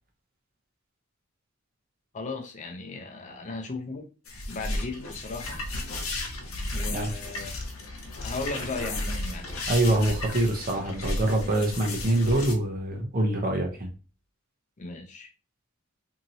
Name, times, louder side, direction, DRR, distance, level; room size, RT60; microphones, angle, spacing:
voice 1, 2.1-4.1 4.5-5.6 6.7-7.7 8.2-9.5 14.8-15.3, left 3 dB, 35° left, 0.5 m, -36 dB
sound 1, 4.3-12.5, left 2 dB, 75° left, 0.7 m, -34 dB
voice 2, 9.7-13.9, right 1 dB, 45° right, 0.7 m, -25 dB
2.9 x 2.7 x 2.7 m
head